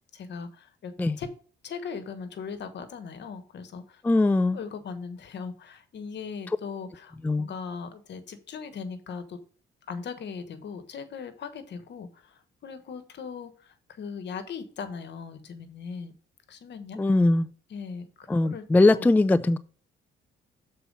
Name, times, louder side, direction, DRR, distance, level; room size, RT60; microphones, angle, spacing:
voice 1, 0.1-1.3 1.6-4.0 4.5-9.4 9.9-16.1 16.5-17.0 17.7-18.6 18.9-19.1, left 5 dB, 60° left, 1.3 m, -39 dB
voice 2, 4.0-4.6 7.2-7.5 17.0-17.5 18.3-19.6, left 2 dB, 10° left, 0.3 m, -21 dB
6.9 x 4.4 x 5.3 m
cardioid pair, 90°, 20 cm